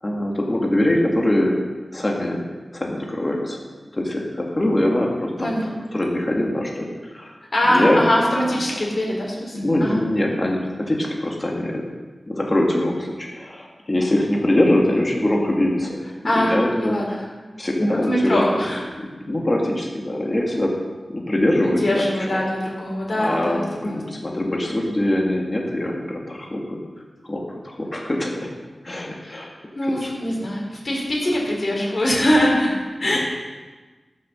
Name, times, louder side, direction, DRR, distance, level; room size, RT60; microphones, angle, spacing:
voice 1, 0.0-1.6 1.9-2.4 2.7-3.6 3.9-5.6 5.9-7.3 7.7-8.0 9.5-11.8 12.2-16.0 16.3-17.0 17.6-18.6 19.0-20.7 21.1-22.3 23.2-26.8 27.3-28.5 28.8-29.5 30.0-30.3 33.0-33.2, left 1 dB, 25° left, -1 dB, 2.0 m, -23 dB
voice 2, 7.5-10.0 16.2-17.2 18.1-18.8 21.6-24.0 29.2-32.7 33.0-33.2, left 1 dB, 50° left, -3 dB, 4.3 m, -22 dB
14.0 x 6.9 x 6.3 m, 1.3 s
wide cardioid pair, 95°, 0 cm